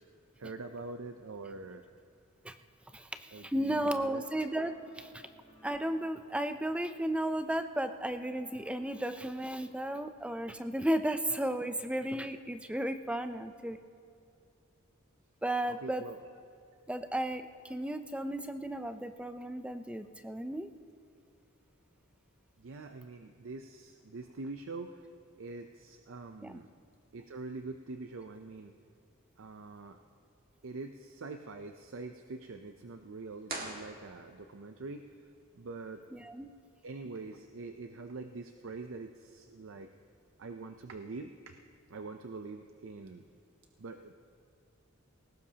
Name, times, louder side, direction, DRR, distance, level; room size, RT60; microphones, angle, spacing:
voice 1, 0.4-1.8 3.3-4.3 8.9-9.3 15.7-16.2 22.6-25.1 25.4-26.7 27.1-28.7 29.4-30.0 30.6-36.0 36.8-39.9 40.4-41.6 41.9-43.3 43.8-44.1, right 3 dB, 70° right, 6 dB, 0.6 m, -44 dB
voice 2, 2.9-5.3 5.6-13.8 15.4-16.0 16.9-20.7 26.4-26.6 36.1-36.5, right 1 dB, 5° right, 9 dB, 0.5 m, -34 dB
sound 1, 3.7-8.9, left 1 dB, 15° left, 3.4 m, -60 dB
sound 2, 33.4-34.6, right 3 dB, 45° right, 1.9 m, -42 dB
20.0 x 18.0 x 2.9 m, 2.4 s
head